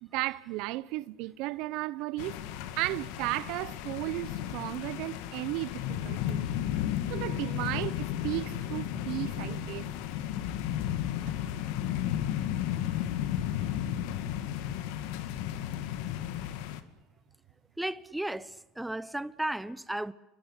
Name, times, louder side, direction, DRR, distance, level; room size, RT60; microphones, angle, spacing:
voice 1, 0.0-2.4 2.8-6.5 7.1-9.9, right 18 dB, 70° right, 0.9 m, -34 dB
sound 1, 2.2-16.8, left 11 dB, 75° left, 2.2 m, -33 dB
voice 2, 17.8-20.1, right 1 dB, 5° right, 1.2 m, -34 dB
28.5 x 24.0 x 8.4 m
supercardioid pair, 90°, 0 cm